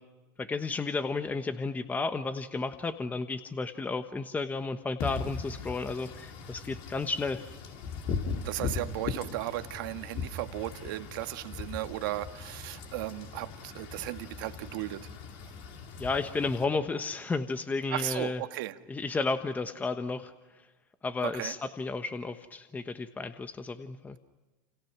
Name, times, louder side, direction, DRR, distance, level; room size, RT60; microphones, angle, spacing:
voice 1, 0.4-7.5 16.0-18.4 18.9-20.3 21.0-24.2, left 3 dB, 15° left, 9 dB, 1.2 m, -32 dB
Wind / Rain, 5.0-16.6, left 5 dB, 55° left, 4.2 m, -39 dB
voice 2, 8.4-15.1 17.9-18.8 21.2-21.5, right 16 dB, 75° right, 8 dB, 1.6 m, -36 dB
29.0 x 28.5 x 6.0 m, 1.2 s
supercardioid pair, 120°, 11 cm